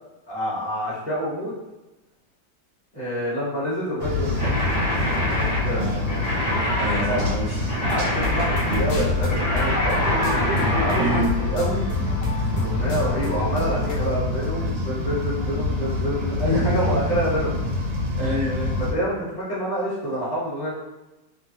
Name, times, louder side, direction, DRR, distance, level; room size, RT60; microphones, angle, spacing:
voice 1, 0.3-1.5 2.9-4.4 5.3-5.8 7.0-7.2 7.8-10.2 10.7-11.8 12.5-17.5 18.8-20.7, equal, 25° left, -9 dB, 1.0 m, -27 dB
sound 1, 4.0-18.9, left 2 dB, 80° right, 1.4 m, -26 dB
sound 2, 4.4-11.2, left 1 dB, 85° left, 0.4 m, -26 dB
voice 2, 5.7-6.2 6.8-7.6 10.9-11.3 16.3-16.9 18.2-18.7, right 1 dB, 65° right, -5 dB, 0.9 m, -27 dB
sound 3, 7.9-14.0, left 2 dB, 70° left, 1.2 m, -32 dB
3.0 x 2.2 x 2.7 m, 1.0 s
omnidirectional pair, 2.0 m